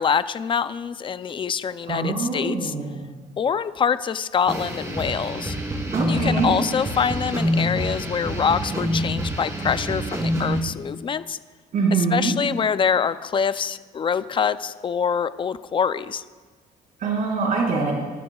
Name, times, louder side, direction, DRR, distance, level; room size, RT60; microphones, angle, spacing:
voice 1, 0.0-2.7 3.4-5.6 6.1-11.4 12.1-16.2, left 7 dB, 30° left, 13 dB, 0.5 m, -25 dB
voice 2, 1.9-3.0 5.9-6.5 11.7-12.3 17.0-17.9, right 4 dB, 55° right, -3 dB, 5.2 m, -24 dB
sound 1, 4.5-10.6, equal, 20° right, 2.9 m, -26 dB
27.0 x 12.5 x 2.4 m, 1.4 s
cardioid pair, 110°, 17 cm